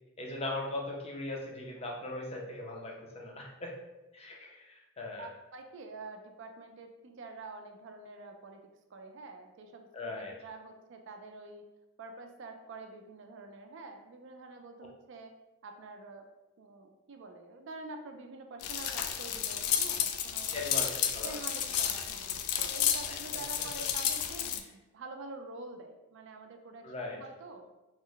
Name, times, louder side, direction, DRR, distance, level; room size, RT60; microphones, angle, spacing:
voice 1, 0.2-3.7 4.1-5.3 9.9-10.3 20.5-21.3 26.8-27.2, left 2 dB, 30° left, -1 dB, 0.5 m, -39 dB
voice 2, 5.2-8.6 8.9-11.6 12.0-15.4 15.6-16.3 16.6-20.5 21.2-27.7, right 3 dB, 55° right, 5 dB, 0.4 m, -47 dB
sound 1, 18.6-24.6, left 9 dB, 90° left, 0.3 m, -32 dB
3.0 x 2.1 x 3.8 m, 1.0 s
head